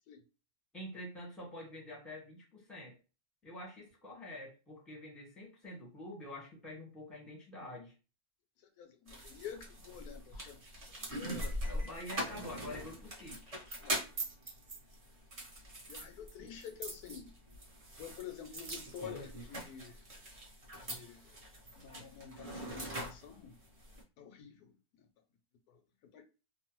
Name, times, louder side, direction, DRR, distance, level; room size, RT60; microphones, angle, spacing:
voice 1, 0.7-3.0 3.4-7.9 11.6-13.6 16.4-16.5, left 1 dB, ahead, 0.7 m, -47 dB
voice 2, 8.6-11.6 13.8-14.0 15.9-17.3 18.0-20.0 20.8-21.4 21.7-23.6 24.2-25.1 25.7-26.2, left 8 dB, 85° left, 1.1 m, -49 dB
sound 1, 9.1-24.0, right 1 dB, 30° right, 0.7 m, -42 dB
2.9 x 2.0 x 2.9 m
omnidirectional pair, 1.6 m